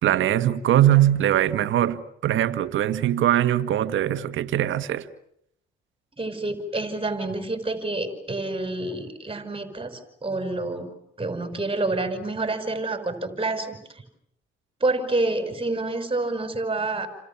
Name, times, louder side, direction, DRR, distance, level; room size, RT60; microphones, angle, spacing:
voice 1, 0.0-5.1, right 12 dB, 65° right, 1.8 m, -21 dB
voice 2, 6.2-10.9 11.2-13.8 14.8-17.1, right 2 dB, 25° right, 5.7 m, -28 dB
29.5 x 27.0 x 7.3 m
supercardioid pair, 70°, 21 cm